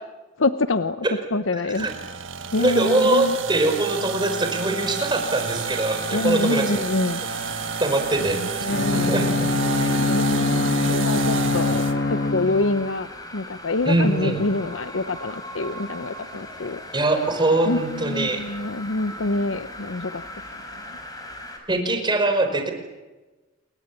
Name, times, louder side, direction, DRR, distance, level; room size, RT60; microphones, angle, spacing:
voice 1, 0.4-1.1 1.3-1.9 2.5-3.4 6.1-7.2 8.3-9.1 9.8-16.8 17.6-20.2 20.9-21.0, left 2 dB, 75° left, 10 dB, 0.9 m, -26 dB
voice 2, 1.6-1.9 2.6-6.8 7.8-8.4 8.9-9.3 13.8-14.4 16.9-18.4 21.7-22.7, right 2 dB, 25° right, 5 dB, 5.0 m, -22 dB
sound 1, 1.7-12.0, right 6 dB, 75° right, 1.6 m, -30 dB
sound 2, 4.3-21.6, left 1 dB, 20° left, 5.6 m, -39 dB
Bowed string instrument, 8.7-12.9, left 3 dB, 55° left, 1.4 m, -23 dB
28.5 x 23.0 x 7.4 m, 1.2 s
head